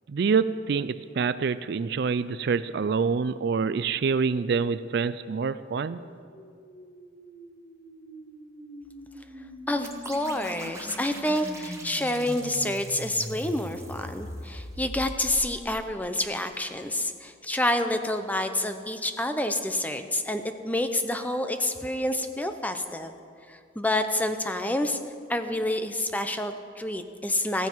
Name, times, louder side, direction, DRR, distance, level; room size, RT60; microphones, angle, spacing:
voice 1, 0.1-6.0, right 5 dB, 60° right, 15 dB, 0.4 m, -26 dB
sound 1, 5.8-15.9, equal, 85° left, 4.3 m, -42 dB
voice 2, 9.7-23.1 23.5-25.0 25.3-27.7, left 1 dB, 10° left, 8 dB, 0.7 m, -28 dB
sound 2, 9.8-14.6, right 3 dB, 15° right, 1.3 m, -45 dB
15.0 x 15.0 x 4.6 m, 2.2 s
head